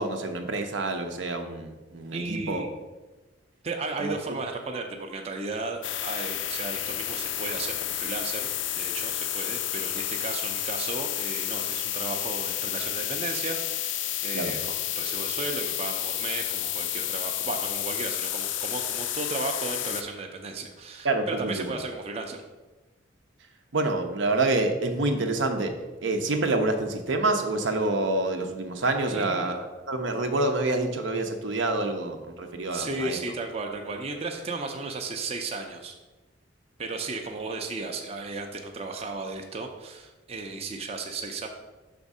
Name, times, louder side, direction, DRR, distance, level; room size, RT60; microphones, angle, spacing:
voice 1, 0.0-2.6 4.0-4.1 14.3-14.5 21.0-21.7 23.7-25.7 26.0-33.2, right 2 dB, 80° right, 5 dB, 0.7 m, -27 dB
voice 2, 2.1-2.7 3.6-8.5 8.8-13.9 14.2-22.4 29.1-29.5 32.7-36.0 36.8-41.5, right 3 dB, 30° right, 3 dB, 0.5 m, -34 dB
sound 1, 5.8-20.0, left 12 dB, 75° left, 0.4 m, -31 dB
5.9 x 3.6 x 5.3 m, 1.2 s
head